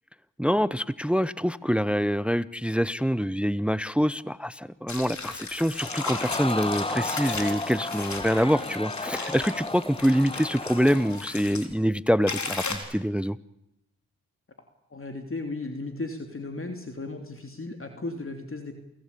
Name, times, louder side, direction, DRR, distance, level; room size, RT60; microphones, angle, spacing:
voice 1, 0.4-13.4, equal, 5° right, 18 dB, 0.8 m, -25 dB
sound 1, 4.9-11.7 12.3-12.8, left 4 dB, 55° left, 4.2 m, -36 dB
Crowd, 5.8-11.3 11.7-11.8, left 2 dB, 15° left, 1.1 m, -34 dB
voice 2, 14.9-18.8, left 2 dB, 40° left, 5 dB, 3.1 m, -35 dB
28.5 x 17.5 x 8.6 m, 0.88 s
supercardioid pair, 45°, 34 cm